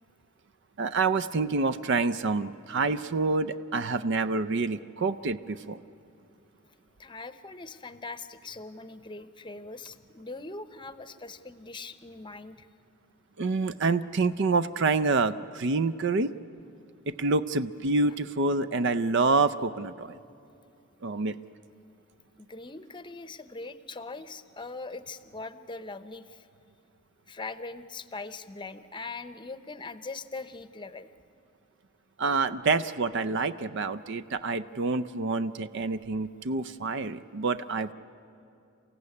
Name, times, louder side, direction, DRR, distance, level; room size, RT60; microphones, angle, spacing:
voice 1, 0.8-5.8 13.4-16.3 17.1-20.2 21.0-21.4 32.2-37.9, right 3 dB, 60° right, 13 dB, 0.5 m, -27 dB
voice 2, 7.0-12.7 22.4-26.5 27.3-31.1, left 3 dB, 25° left, 12 dB, 0.8 m, -41 dB
28.5 x 15.5 x 9.7 m, 2.7 s
head